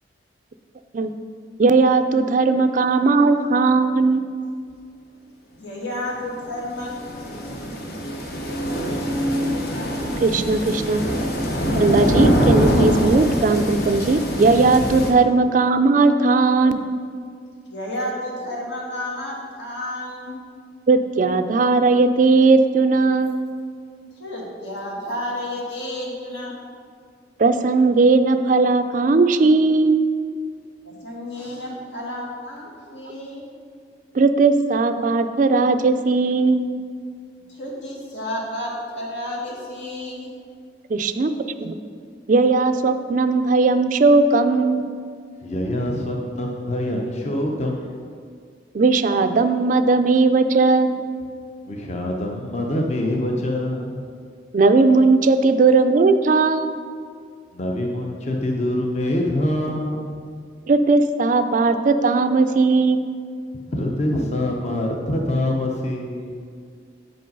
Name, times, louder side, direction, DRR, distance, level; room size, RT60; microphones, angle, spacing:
voice 1, 1.6-4.2 10.2-11.0 11.7-16.8 20.9-23.4 27.4-30.0 34.1-36.7 40.9-41.3 41.6-41.8 42.3-44.8 48.7-51.0 54.5-56.8 60.7-63.1, right 3 dB, 45° right, 9 dB, 0.4 m, -17 dB
voice 2, 5.6-6.9 17.7-20.4 24.2-26.5 30.8-33.5 37.5-40.3, left 1 dB, 80° left, -3 dB, 2.0 m, -31 dB
sound 1, 6.2-15.1, equal, 60° left, 1.1 m, -23 dB
voice 3, 45.4-48.0 51.7-54.0 57.5-60.2 63.5-66.4, left 1 dB, 40° left, 0 dB, 0.7 m, -25 dB
8.5 x 5.3 x 5.3 m, 2.1 s
head